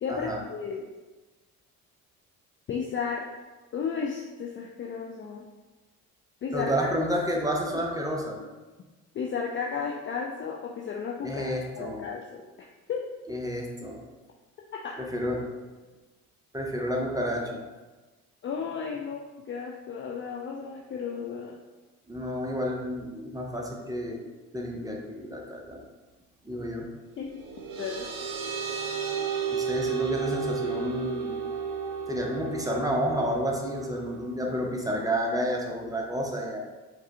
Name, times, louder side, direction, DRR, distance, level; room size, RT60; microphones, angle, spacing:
voice 1, 0.0-0.9 2.7-3.3 3.7-5.4 6.4-6.9 7.7-7.8 8.4-8.5 9.1-13.0 14.8-15.0 18.4-21.6 27.2-27.4 27.8-28.1, left 6 dB, 30° left, -1 dB, 0.4 m, -34 dB
voice 2, 6.5-8.4 11.2-12.0 13.3-14.0 15.0-15.4 16.5-17.6 22.1-24.2 24.5-25.8 26.4-26.9 29.5-31.3 32.1-36.6, equal, 10° right, -1 dB, 0.7 m, -30 dB
sound 1, 27.2-34.3, right 6 dB, 50° right, 0.7 m, -33 dB
4.6 x 2.3 x 2.8 m, 1.2 s
figure-of-eight pair, 45°, 44 cm